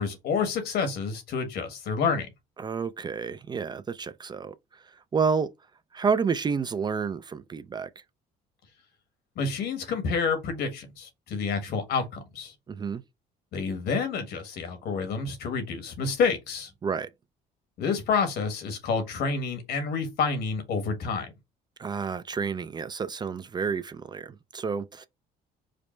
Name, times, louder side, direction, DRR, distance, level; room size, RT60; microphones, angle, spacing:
voice 1, 0.0-2.3 9.4-12.5 13.5-16.7 17.8-21.3, left 5 dB, 75° left, 1.5 m, -28 dB
voice 2, 2.6-4.5 5.1-5.5 5.9-7.9 12.7-13.0 16.8-17.1 21.8-25.1, right 5 dB, 25° right, 0.3 m, -29 dB
5.0 x 2.1 x 3.1 m
cardioid pair, 110°, 17 cm